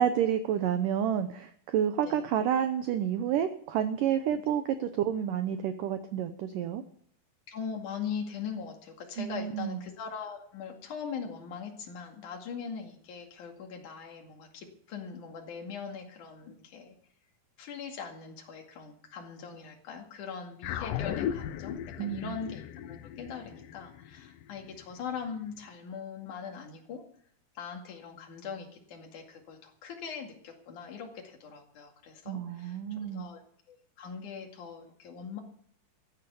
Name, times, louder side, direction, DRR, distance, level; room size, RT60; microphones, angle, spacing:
voice 1, 0.0-6.8 9.2-9.8 22.0-22.3 32.3-33.3, right 9 dB, 90° right, 9 dB, 1.8 m, -29 dB
voice 2, 7.5-17.0 17.6-27.0 27.5-33.4 33.7-35.4, left 6 dB, 55° left, 2 dB, 3.3 m, -41 dB
sound 1, 20.6-25.2, left 10 dB, 85° left, 1.9 m, -37 dB
14.5 x 10.5 x 6.9 m, 0.63 s
omnidirectional pair, 4.9 m